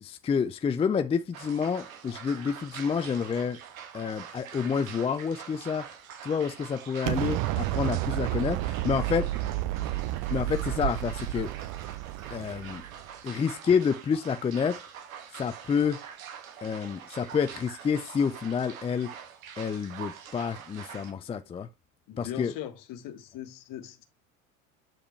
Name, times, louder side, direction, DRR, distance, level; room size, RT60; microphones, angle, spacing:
voice 1, 0.0-3.6 3.9-5.9 6.2-9.3 10.3-11.5 12.3-12.8 13.2-14.8 15.3-16.0 16.6-19.1 19.6-21.7 22.2-22.5, left 6 dB, 15° left, 0.4 m, -29 dB
sound 1, 1.3-21.1, right 8 dB, 80° right, 1.3 m, -44 dB
Explosion, 7.1-13.1, right 16 dB, 50° right, 0.6 m, -31 dB
voice 2, 22.1-24.0, left 11 dB, 50° left, 1.5 m, -40 dB
8.8 x 5.0 x 3.1 m
hypercardioid pair, 75°, 40 cm